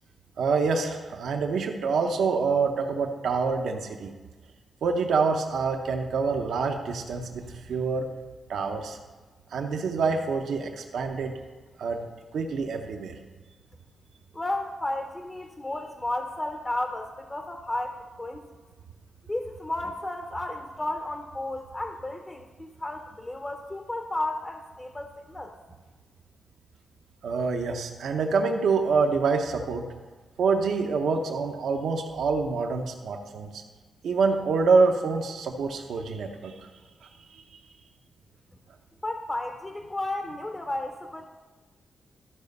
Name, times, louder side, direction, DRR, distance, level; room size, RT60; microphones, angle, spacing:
voice 1, 0.4-4.1 4.8-8.1 8.5-9.0 9.5-11.4 11.8-12.0 12.3-13.1 27.2-29.9 30.4-33.6 34.0-36.7 37.3-37.4, right 4 dB, 75° right, 3 dB, 0.8 m, -26 dB
voice 2, 14.3-18.4 19.3-25.6 39.0-41.2, left 1 dB, 15° left, 5 dB, 0.6 m, -33 dB
13.0 x 5.1 x 5.3 m, 1.4 s
wide cardioid pair, 165°, 0 cm